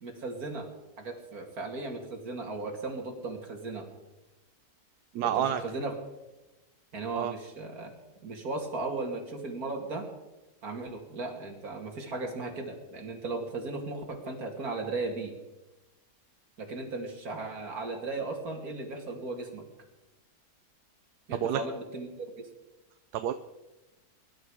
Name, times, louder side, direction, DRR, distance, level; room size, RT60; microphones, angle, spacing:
voice 1, 0.0-0.7 1.0-3.9 5.4-5.9 6.9-7.9 8.2-10.1 10.6-15.3 16.6-19.6 21.3-22.1, right 3 dB, 70° right, 2 dB, 2.9 m, -36 dB
voice 2, 5.1-5.6 7.1-7.3 21.4-21.6 23.1-23.3, right 10 dB, 85° right, 10 dB, 1.2 m, -28 dB
23.5 x 11.5 x 4.9 m, 1.0 s
omnidirectional pair, 1.6 m